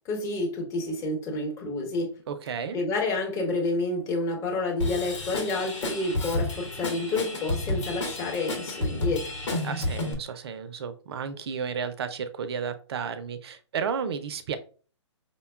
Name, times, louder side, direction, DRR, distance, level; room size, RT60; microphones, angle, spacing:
voice 1, 0.0-2.2 2.7-9.4, left 2 dB, 20° left, 1.0 m, -29 dB
voice 2, 2.3-2.8 9.6-14.6, right 6 dB, 55° right, 0.5 m, -33 dB
Drum kit / Drum, 4.8-10.1, left 2 dB, 80° left, 1.2 m, -31 dB
5.1 x 2.2 x 2.3 m
hypercardioid pair, 135°, 16 cm